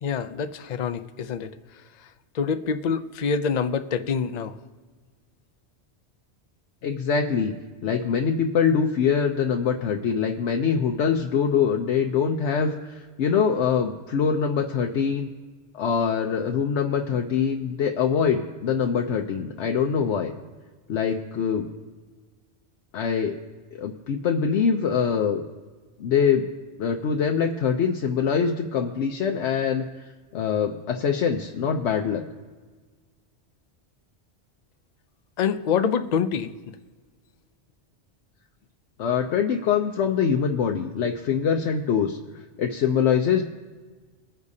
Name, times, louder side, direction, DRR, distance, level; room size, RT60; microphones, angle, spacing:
voice 1, 0.0-1.5 2.3-4.5 35.4-36.5, left 6 dB, 50° left, 9 dB, 0.6 m, -26 dB
voice 2, 6.8-7.5 7.8-15.3 15.7-20.3 20.9-21.7 22.9-23.4 23.7-25.4 26.0-26.5 26.8-29.8 30.3-32.2 39.0-42.2 42.6-43.4, left 6 dB, 80° left, 3 dB, 1.0 m, -24 dB
22.0 x 9.9 x 2.7 m, 1.4 s
omnidirectional pair, 1.1 m